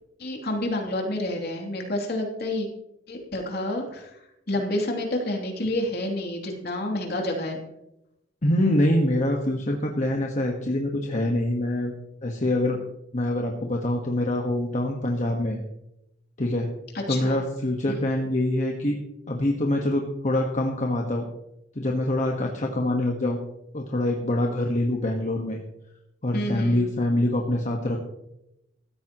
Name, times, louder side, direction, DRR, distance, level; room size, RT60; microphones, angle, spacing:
voice 1, 0.2-2.7 3.1-4.1 4.5-7.6 16.9-17.4 26.3-26.8, left 1 dB, 55° left, 1 dB, 3.0 m, -29 dB
voice 2, 8.4-11.9 12.2-12.8 13.1-15.6 16.4-16.7 17.1-19.0 19.3-21.3 21.7-23.4 23.7-25.6 26.2-28.0, left 1 dB, 40° left, 1 dB, 1.5 m, -25 dB
16.0 x 14.0 x 3.1 m, 0.85 s
head